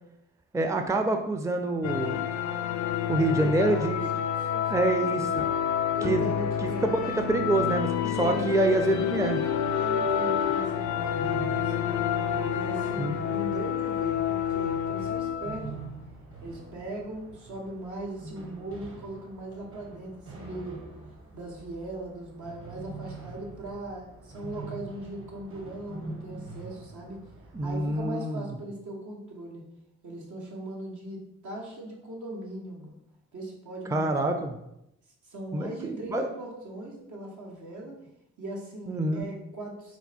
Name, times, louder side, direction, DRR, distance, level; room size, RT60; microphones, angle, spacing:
voice 1, 0.5-2.2 3.1-4.1 4.7-5.4 6.0-6.3 6.6-7.9 8.2-9.4 13.0-13.2 27.5-28.5 33.9-34.6 35.5-36.3 38.9-39.3, right 2 dB, 10° right, 5 dB, 0.4 m, -26 dB
sound 1, 1.8-15.7, left 8 dB, 65° left, 0.5 m, -28 dB
voice 2, 3.2-4.9 6.0-7.2 8.0-8.5 9.7-12.0 12.5-15.9 16.4-20.8 21.3-27.2 27.6-29.6 30.0-33.0 33.3-34.1 35.2-38.0 38.4-40.0, right 1 dB, 70° right, -2 dB, 1.2 m, -39 dB
sound 2, 8.8-28.1, right 3 dB, 45° right, 1.2 m, -45 dB
4.3 x 2.2 x 4.1 m, 0.84 s
supercardioid pair, 50°, 31 cm